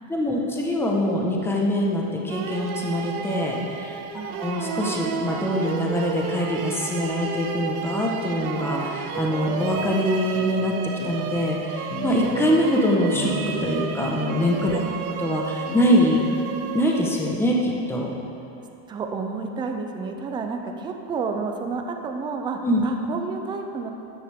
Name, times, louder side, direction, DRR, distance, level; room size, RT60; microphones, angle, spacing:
voice 1, 0.1-10.7 11.0-13.3 13.6-14.8 15.2-16.2 16.7-18.1 22.6-22.8, equal, 5° left, -2 dB, 1.1 m, -24 dB
sound 1, 2.3-17.4, right 6 dB, 85° right, 1.1 m, -32 dB
sound 2, 9.7-9.9 10.3-10.6 11.0-11.2 11.9-12.5 13.1-13.9 14.4-15.2 15.7-15.8, left 2 dB, 80° left, 2.3 m, -35 dB
voice 2, 14.8-15.1 18.9-23.9, right 4 dB, 10° right, 4 dB, 0.3 m, -30 dB
13.5 x 10.0 x 3.5 m, 2.8 s
supercardioid pair, 155°, 42 cm